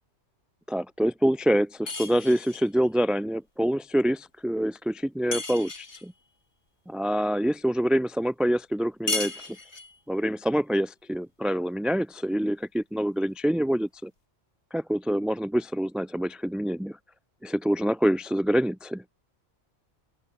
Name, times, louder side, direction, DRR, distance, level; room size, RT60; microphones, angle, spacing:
voice 1, 0.7-6.1 6.9-9.5 10.1-14.1 14.7-17.0 17.4-19.0, equal, ahead, 0.4 m, -26 dB
sound 1, 1.9-2.7 5.3-6.1 9.1-10.0, left 3 dB, 70° left, 3.7 m, -33 dB
open air
omnidirectional pair, 1.2 m